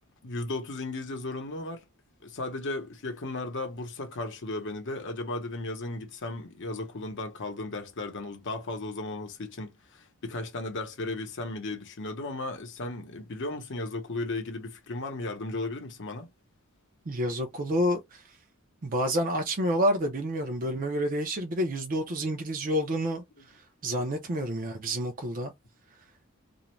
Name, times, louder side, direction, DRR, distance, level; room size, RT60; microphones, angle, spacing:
voice 1, 0.2-1.8 2.2-16.3, left 2 dB, 60° left, 0.8 m, -35 dB
voice 2, 17.1-18.2 18.8-23.2 23.8-25.5, equal, 40° right, 0.5 m, -28 dB
2.5 x 2.1 x 3.0 m
head